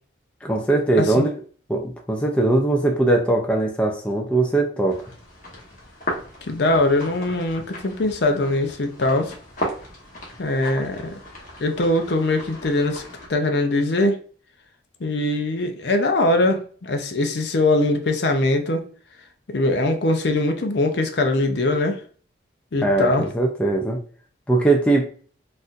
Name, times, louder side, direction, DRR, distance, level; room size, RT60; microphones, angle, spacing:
voice 1, 0.4-1.3 1.7-5.0 22.8-24.0 24.5-25.1, right 2 dB, 5° left, 0 dB, 0.4 m, -20 dB
sound 1, 4.9-13.3, equal, 45° left, 1.0 m, -36 dB
voice 2, 6.5-9.3 10.4-11.2 11.6-13.0 13.3-14.2 15.0-18.9 19.5-22.0 22.7-23.2, left 2 dB, 65° left, 4 dB, 0.5 m, -21 dB
4.0 x 2.5 x 2.4 m, 0.43 s
head